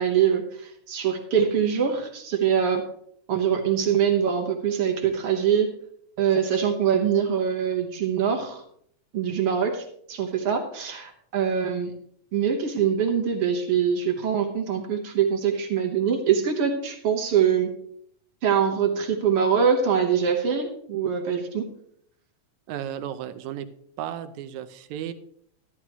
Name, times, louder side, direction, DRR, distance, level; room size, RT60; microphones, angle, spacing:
voice 1, 0.0-2.8 3.3-5.7 6.2-8.6 9.1-11.9 12.3-17.7 18.4-21.6, right 7 dB, 60° right, 3 dB, 2.0 m, -23 dB
voice 2, 22.7-23.7 24.0-25.1, right 10 dB, 80° right, 11 dB, 2.0 m, -34 dB
13.0 x 12.5 x 3.0 m, 0.67 s
omnidirectional pair, 3.3 m